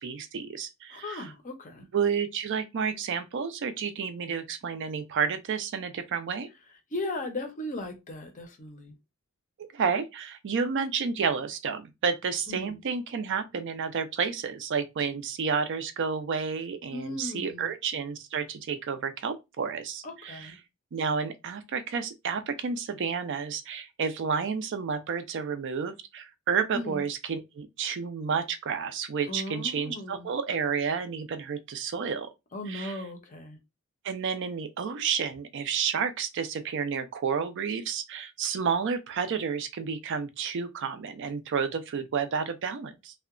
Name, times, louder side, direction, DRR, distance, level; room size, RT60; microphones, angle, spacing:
voice 1, 0.0-1.3 1.9-6.5 9.6-20.5 20.9-32.3 32.7-33.0 34.0-43.1, right 6 dB, 55° right, 0.4 m, -31 dB
voice 2, 0.9-1.9 6.9-8.9 12.5-12.8 16.9-17.7 20.0-20.6 26.7-27.0 29.3-30.3 32.5-33.6, left 1 dB, 35° left, 0.5 m, -37 dB
2.7 x 2.1 x 2.4 m
head